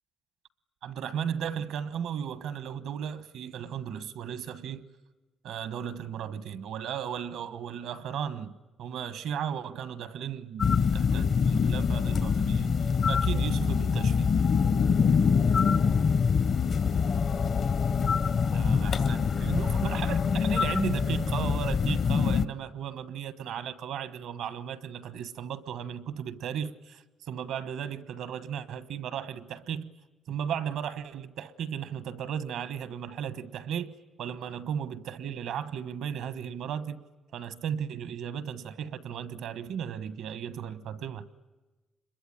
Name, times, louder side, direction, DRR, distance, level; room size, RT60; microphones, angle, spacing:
voice 1, 0.8-4.9 5.4-12.7 13.1-14.3 18.5-29.9 30.3-37.0 37.3-41.3, right 8 dB, 80° right, 1.2 m, -35 dB
sound 1, 10.6-22.4, left 6 dB, 55° left, 0.9 m, -25 dB
26.0 x 22.0 x 10.0 m
cardioid pair, 90°, 0 cm